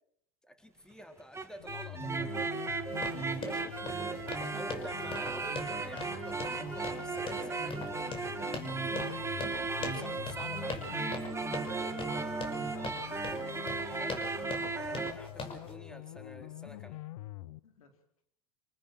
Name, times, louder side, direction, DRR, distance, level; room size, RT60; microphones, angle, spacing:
voice 1, 0.4-2.7 3.4-3.7 4.5-11.1 14.0-17.0, equal, 5° left, 6 dB, 4.1 m, -49 dB
sound 1, 1.2-15.1, right 4 dB, 15° right, 2.6 m, -36 dB
sound 2, 1.6-17.6, left 16 dB, 75° left, 1.1 m, -46 dB
sound 3, 2.8-15.7, left 4 dB, 30° left, 5.8 m, -43 dB
voice 2, 12.1-13.8 17.6-18.0, left 6 dB, 90° left, 5 dB, 4.7 m, -57 dB
27.0 x 19.0 x 7.7 m, 0.71 s
hypercardioid pair, 105°, 18 cm